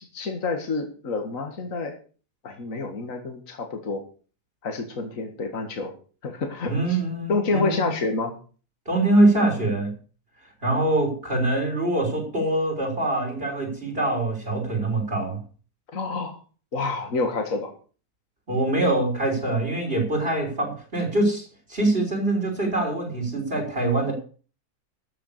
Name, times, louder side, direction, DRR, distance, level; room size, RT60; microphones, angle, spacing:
voice 1, 0.0-1.9 2.4-4.0 4.6-5.9 6.2-7.0 7.3-8.3 15.9-16.4 16.7-17.7, left 3 dB, 55° left, 5 dB, 2.3 m, -28 dB
voice 2, 6.7-7.9 8.9-9.9 10.6-15.4 18.5-24.1, right 2 dB, 35° right, 1 dB, 4.0 m, -24 dB
13.5 x 6.9 x 6.7 m, 0.39 s
omnidirectional pair, 1.7 m